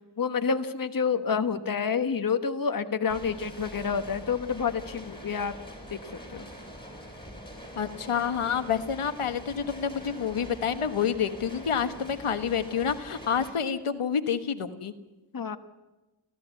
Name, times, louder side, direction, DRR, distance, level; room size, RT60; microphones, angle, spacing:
voice 1, 0.2-5.5 5.9-6.4 15.3-15.6, left 6 dB, 40° left, 8 dB, 1.2 m, -28 dB
sound 1, 3.1-13.5, equal, 10° left, 6.4 m, -44 dB
voice 2, 7.8-14.9, left 7 dB, 85° left, 9 dB, 1.4 m, -28 dB
28.5 x 14.0 x 8.3 m, 1.1 s
wide cardioid pair, 95°, 49 cm